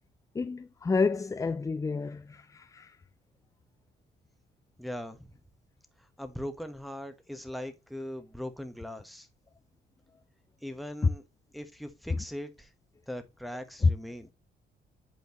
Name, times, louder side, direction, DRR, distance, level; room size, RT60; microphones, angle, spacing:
voice 1, 0.3-3.0 12.1-12.2 13.8-13.9, left 4 dB, 15° left, 0.4 m, -29 dB
voice 2, 4.8-5.3 6.0-9.3 10.6-11.2 11.5-12.7 13.1-14.3, equal, ahead, 1.2 m, -40 dB
8.2 x 4.5 x 3.0 m
cardioid pair, 90°, 20 cm